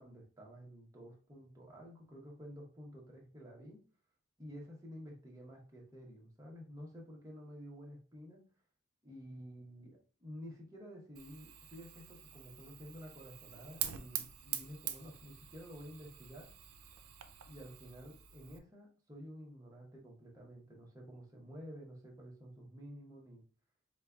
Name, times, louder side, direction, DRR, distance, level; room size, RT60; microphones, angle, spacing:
voice 1, 0.0-3.8 4.4-8.4 9.0-16.5 17.5-23.4, equal, 15° right, -2 dB, 0.7 m, -51 dB
Fire, 11.2-18.6, right 11 dB, 85° right, 0.4 m, -45 dB
4.7 x 2.2 x 2.3 m, 0.37 s
head